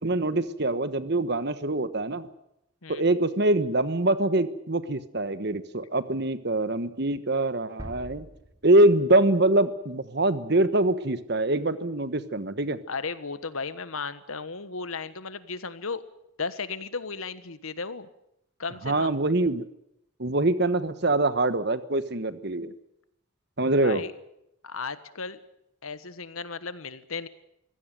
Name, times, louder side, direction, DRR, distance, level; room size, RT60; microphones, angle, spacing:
voice 1, 0.0-2.3 2.9-8.3 8.6-12.8 18.8-19.6 20.2-22.7 23.6-24.0, right 2 dB, 50° right, 13 dB, 1.3 m, -24 dB
sound 1, 7.8-9.7, equal, 20° right, 2.4 m, -44 dB
voice 2, 12.9-16.0 16.4-18.1 18.6-19.1 23.8-24.1 24.6-25.4 25.8-27.3, left 4 dB, 85° left, 14 dB, 1.4 m, -35 dB
24.0 x 16.5 x 9.2 m, 0.81 s
head